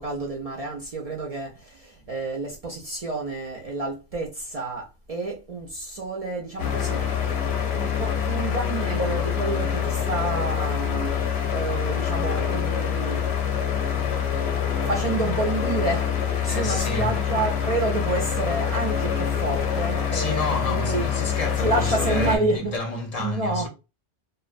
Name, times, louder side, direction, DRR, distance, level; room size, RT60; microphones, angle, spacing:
voice 1, 0.0-7.0 7.7-14.1 14.9-21.1 21.6-23.7, right 3 dB, 55° right, 0.4 m, -29 dB
sound 1, 6.6-22.4, left 8 dB, 85° left, 0.9 m, -25 dB
voice 2, 16.5-17.1 20.1-23.7, left 2 dB, 45° left, 0.6 m, -30 dB
2.4 x 2.1 x 2.4 m
omnidirectional pair, 1.1 m